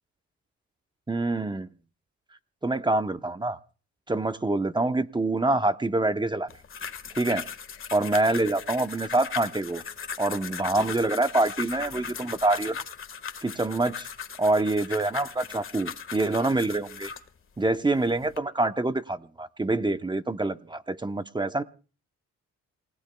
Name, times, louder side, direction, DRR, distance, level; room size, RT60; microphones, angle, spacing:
voice 1, 1.1-1.7 2.6-3.6 4.1-6.5 7.2-7.5 7.9-9.8 10.2-12.8 13.4-14.1 14.4-17.1 17.6-21.6, right 2 dB, 15° right, 0.8 m, -26 dB
sound 1, 6.5-17.3 17.9-18.4, left 7 dB, 45° left, 1.6 m, -38 dB
28.5 x 17.0 x 2.3 m
cardioid pair, 90°, 30 cm